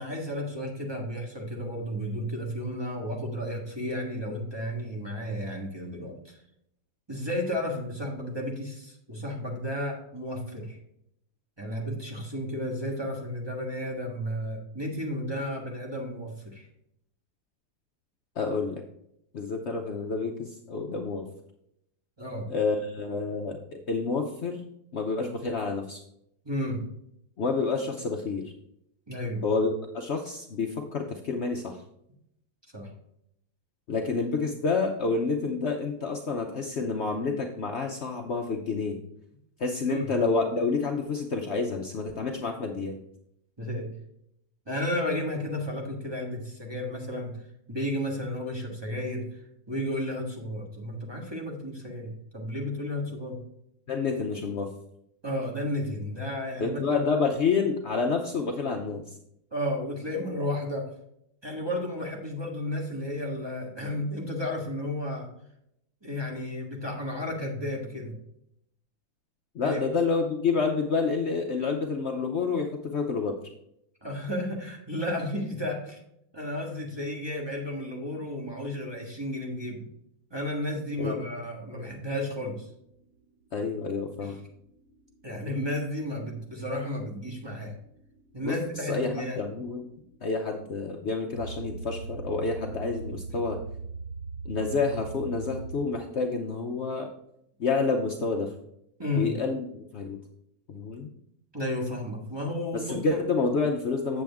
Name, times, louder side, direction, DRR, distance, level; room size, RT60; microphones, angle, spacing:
voice 1, 0.0-6.4 7.1-10.8 11.6-16.7 22.2-22.5 26.4-26.8 29.1-29.4 32.7-32.9 39.9-40.1 43.6-43.9 44.7-47.3 47.7-49.4 49.7-53.4 55.2-57.0 59.5-60.9 61.4-65.3 66.0-68.1 69.6-69.9 74.0-76.0 76.3-79.9 80.3-82.7 84.2-84.4 85.2-87.7 88.3-89.4 99.0-99.3 101.5-103.0, left 1 dB, 15° right, -1 dB, 1.3 m, -33 dB
voice 2, 18.4-18.8 19.3-21.3 22.5-24.6 24.9-26.0 27.4-28.5 29.4-31.8 33.9-39.0 39.6-43.0 53.9-54.7 56.6-59.0 69.5-73.4 81.0-81.2 83.5-84.4 88.4-88.6 88.9-89.8 90.2-93.6 94.4-97.1 97.6-98.5 99.2-100.2 100.7-101.1 102.7-104.2, left 4 dB, 85° left, 3 dB, 0.6 m, -28 dB
sound 1, 82.8-95.8, right 4 dB, 45° right, 2.5 m, -41 dB
7.8 x 7.6 x 3.5 m, 0.77 s
omnidirectional pair, 2.2 m